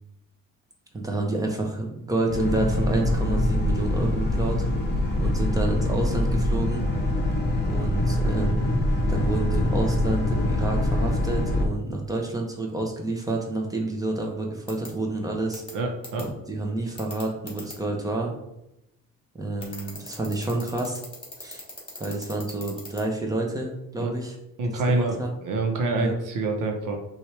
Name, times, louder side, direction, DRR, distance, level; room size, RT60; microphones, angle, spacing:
voice 1, 0.9-4.6 5.2-6.9 7.7-8.8 9.1-15.6 16.2-18.3 19.4-21.0 21.4-21.6 22.0-24.4 24.9-25.3 26.0-26.1, right 2 dB, 10° right, 1 dB, 0.7 m, -29 dB
Boat Water vehicle, 2.3-11.7, left 1 dB, 30° left, 0.7 m, -24 dB
sound 1, 14.7-14.9 15.5-15.7 16.0-16.2 17.0-17.7 19.6-23.0, left 2 dB, 15° left, 1.3 m, -39 dB
voice 2, 15.7-16.3 24.0-24.1 24.6-27.0, right 2 dB, 65° right, 2 dB, 0.8 m, -26 dB
5.9 x 2.4 x 3.3 m, 0.86 s
cardioid pair, 150°, 34 cm